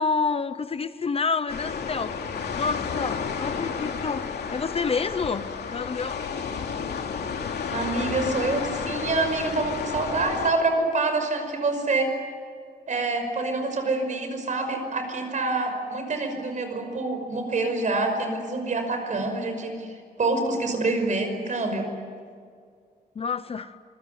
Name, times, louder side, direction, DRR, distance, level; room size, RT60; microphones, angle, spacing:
voice 1, 0.0-2.2 2.6-6.2 23.1-23.7, left 4 dB, 35° left, 12 dB, 0.8 m, -28 dB
sound 1, 1.5-10.5, left 6 dB, 80° left, 2.9 m, -31 dB
voice 2, 7.7-12.1 12.9-19.9 20.2-21.9, right 3 dB, 50° right, 5 dB, 5.7 m, -26 dB
26.5 x 22.5 x 9.4 m, 2.1 s
wide cardioid pair, 160°, 17 cm